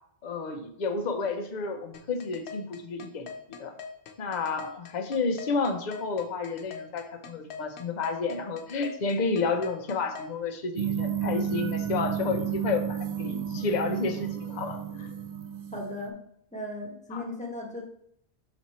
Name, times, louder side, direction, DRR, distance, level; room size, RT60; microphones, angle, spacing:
voice 1, 0.2-3.3 3.6-3.8 4.2-15.1 17.1-17.2, left 4 dB, 50° left, 5 dB, 0.8 m, -31 dB
sound 1, 1.9-10.3, left 5 dB, 90° left, 1.0 m, -42 dB
sound 2, 10.8-16.1, right 9 dB, 50° right, 0.6 m, -32 dB
voice 2, 15.7-16.1 16.5-17.8, left 1 dB, 5° left, -1 dB, 1.2 m, -36 dB
6.1 x 4.3 x 4.2 m, 0.71 s
omnidirectional pair, 1.1 m